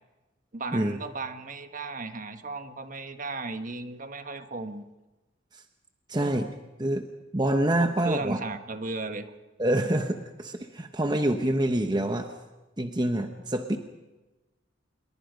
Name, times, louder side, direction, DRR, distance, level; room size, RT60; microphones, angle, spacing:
voice 1, 0.5-4.8 6.2-6.4 7.8-9.3 9.7-9.9, right 3 dB, 40° right, 8 dB, 1.3 m, -35 dB
voice 2, 6.1-6.5 6.8-7.1 7.3-8.4 9.6-10.1 10.4-12.3 12.8-13.8, right 1 dB, 20° right, 6 dB, 1.0 m, -26 dB
27.0 x 22.0 x 5.2 m, 1.1 s
head